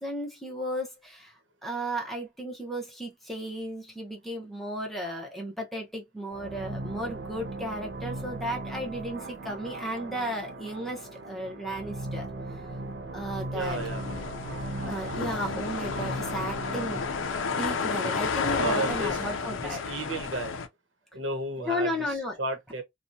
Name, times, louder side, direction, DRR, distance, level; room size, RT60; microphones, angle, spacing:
voice 1, 0.0-1.3 1.6-12.3 13.1-13.8 14.1-14.2 14.8-17.1 17.6-19.8 21.6-22.4, equal, ahead, 0.7 m, -34 dB
sound 1, 6.3-19.6, right 2 dB, 60° right, 0.5 m, -39 dB
voice 2, 13.5-14.0 18.6-19.2 19.6-20.6 21.1-22.0 22.4-22.8, right 2 dB, 80° right, 0.9 m, -32 dB
sound 2, 13.6-20.7, left 5 dB, 85° left, 0.4 m, -32 dB
2.8 x 2.2 x 2.5 m
head